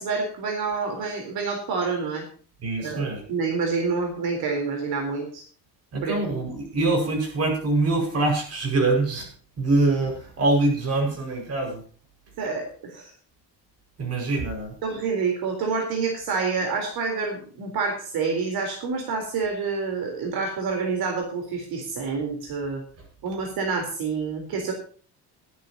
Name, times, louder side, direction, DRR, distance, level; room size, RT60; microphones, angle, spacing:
voice 1, 0.0-2.2 2.8-5.4 6.0-6.1 12.4-13.1 14.8-22.8 23.2-24.7, right 4 dB, 65° right, 2 dB, 3.9 m, -28 dB
voice 2, 2.6-3.2 5.9-9.3 9.6-11.8 14.0-14.7, right 2 dB, 35° right, 2 dB, 5.4 m, -24 dB
22.0 x 10.0 x 2.9 m, 0.42 s
cardioid pair, 175°, 40 cm